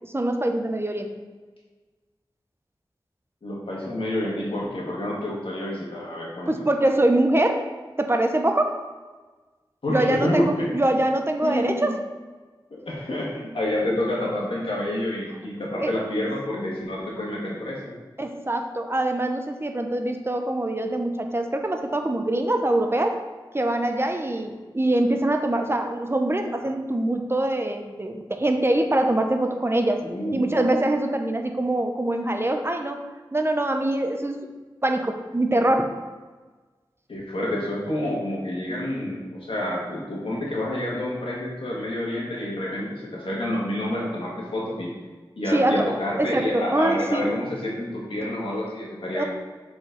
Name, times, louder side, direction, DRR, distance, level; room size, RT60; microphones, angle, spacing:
voice 1, 0.0-1.1 6.5-7.6 8.0-8.8 9.9-12.0 15.8-15.9 18.2-23.2 23.5-30.0 30.3-33.0 33.3-34.5 34.8-35.9 45.5-45.9 46.2-47.3 49.1-49.2, right 1 dB, 25° right, 4 dB, 0.7 m, -24 dB
voice 2, 3.4-6.7 9.8-10.7 11.4-11.9 12.7-17.9 30.0-30.5 37.1-44.9 45.3-49.2, left 1 dB, 90° left, -4 dB, 1.6 m, -28 dB
6.7 x 4.3 x 4.0 m, 1.3 s
wide cardioid pair, 50°, 9 cm